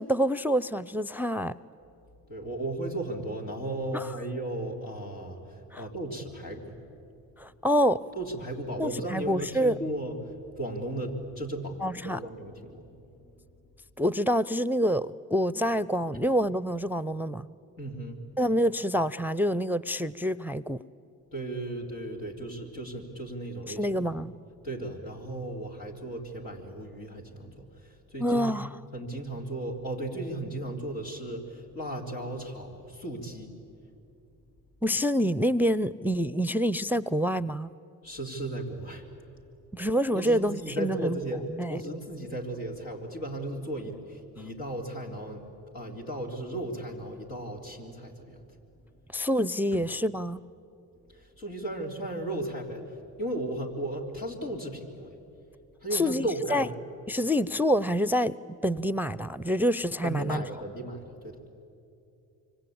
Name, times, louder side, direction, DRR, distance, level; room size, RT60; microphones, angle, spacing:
voice 1, 0.0-1.6 3.9-4.1 5.7-5.8 7.4-8.0 8.8-9.8 11.8-12.2 14.0-17.5 18.4-20.8 23.7-24.3 28.2-28.8 34.8-37.7 39.7-41.2 41.6-41.8 49.1-50.4 55.9-56.7 57.1-58.3 58.6-60.4, equal, 5° right, 17 dB, 0.5 m, -27 dB
voice 2, 2.3-6.8 8.2-12.9 13.2-13.3 17.8-18.2 21.3-24.3 24.6-28.5 28.9-33.5 38.0-39.0 40.1-45.4 45.7-48.4 49.7-49.8 51.1-55.2 55.8-56.7 60.0-61.5, right 1 dB, 80° left, -1 dB, 3.7 m, -35 dB
26.0 x 24.5 x 8.7 m, 2.7 s
hypercardioid pair, 45°, 44 cm